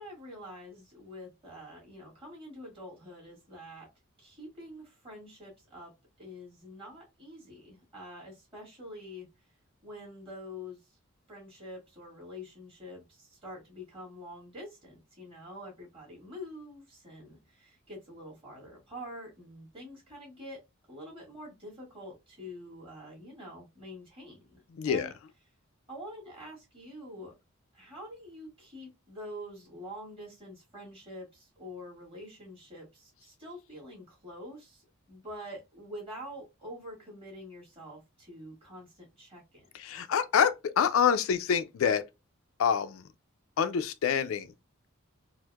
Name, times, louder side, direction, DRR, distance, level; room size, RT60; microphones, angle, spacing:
voice 1, 0.0-3.9 4.2-5.9 6.2-9.3 9.8-11.0 11.3-20.6 20.9-25.1 25.9-27.3 27.7-39.7 39.9-40.1, equal, 25° right, 1.8 m, -46 dB
voice 2, 24.8-25.1 39.8-42.0 42.6-43.0 43.6-44.5, left 7 dB, 70° left, 0.3 m, -26 dB
4.3 x 2.0 x 2.3 m
head